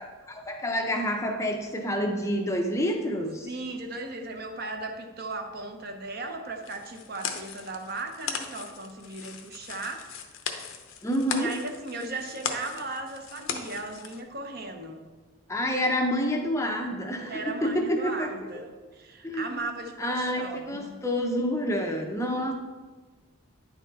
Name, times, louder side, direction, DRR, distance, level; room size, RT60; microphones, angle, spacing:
voice 1, 0.0-3.5 11.0-11.5 15.5-18.3 19.2-19.6 20.0-22.5, equal, 15° left, 3 dB, 0.6 m, -28 dB
voice 2, 3.4-10.0 11.3-15.0 17.3-21.0 22.2-22.4, right 2 dB, 45° right, 5 dB, 0.8 m, -37 dB
sound 1, 6.6-14.2, left 7 dB, 75° left, 0.7 m, -38 dB
10.0 x 4.5 x 4.0 m, 1.3 s
head